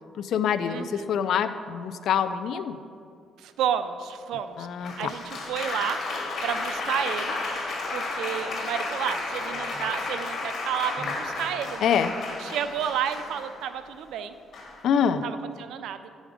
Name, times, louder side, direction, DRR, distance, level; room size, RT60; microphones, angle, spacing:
voice 1, 0.2-2.8 4.6-4.9 11.8-12.1 14.8-15.2, left 8 dB, 75° left, 11 dB, 0.4 m, -25 dB
voice 2, 0.7-1.1 3.4-7.3 7.9-11.9 12.4-14.3 15.2-16.0, right 9 dB, 85° right, 11 dB, 0.4 m, -31 dB
Applause, 4.8-13.7 14.5-14.9, left 3 dB, 55° left, 1.7 m, -32 dB
10.5 x 5.1 x 5.1 m, 2.3 s
cardioid pair, 90°, 0 cm